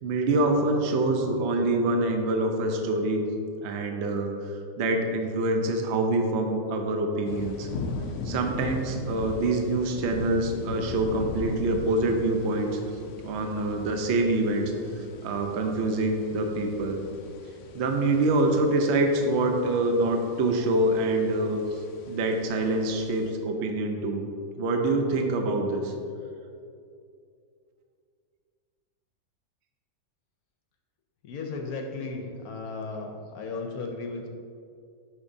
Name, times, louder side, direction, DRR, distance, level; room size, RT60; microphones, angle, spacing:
voice 1, 0.0-3.2 3.6-4.3 4.8-7.7 8.2-12.8 13.2-17.0 17.7-21.8 22.1-24.2 24.6-25.9, right 2 dB, 60° right, 3 dB, 0.7 m, -25 dB
sound 1, 7.2-23.3, left 3 dB, 90° left, 0.6 m, -40 dB
voice 2, 31.2-34.3, left 3 dB, 70° left, 2 dB, 1.0 m, -35 dB
8.1 x 5.8 x 2.7 m, 2.5 s
omnidirectional pair, 1.9 m